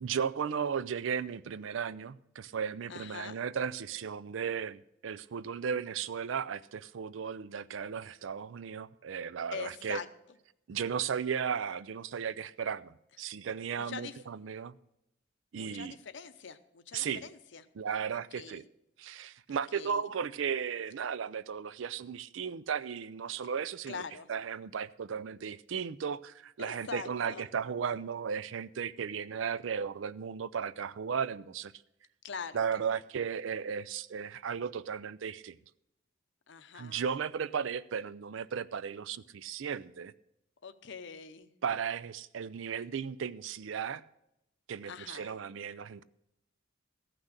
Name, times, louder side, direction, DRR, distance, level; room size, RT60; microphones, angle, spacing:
voice 1, 0.0-10.0 10.7-14.8 15.5-16.0 16.9-17.2 17.8-18.6 19.0-24.0 24.3-31.7 32.5-35.6 36.7-40.1 41.6-44.0 44.7-46.0, right 7 dB, 70° right, 0.4 m, -35 dB
voice 2, 2.9-3.4 9.5-10.1 13.7-14.2 15.6-17.6 18.3-18.6 19.7-20.0 23.9-24.3 26.6-27.5 32.2-32.9 36.5-37.1 40.6-41.5 44.8-45.3, left 6 dB, 65° left, 0.7 m, -43 dB
14.5 x 6.0 x 6.5 m
head